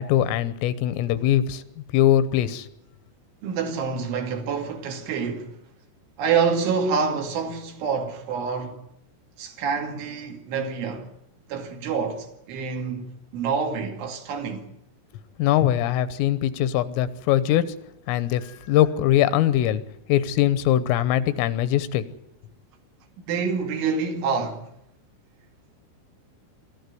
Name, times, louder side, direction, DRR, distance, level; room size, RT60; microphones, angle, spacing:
voice 1, 0.0-1.6 1.9-2.7 15.4-17.7 18.1-19.8 20.1-22.0, left 12 dB, 80° left, 3.5 m, -21 dB
voice 2, 3.4-5.6 6.2-8.8 9.4-11.1 11.5-14.7 23.3-24.7, right 5 dB, 70° right, 4.6 m, -27 dB
25.0 x 14.0 x 9.4 m
omnidirectional pair, 5.9 m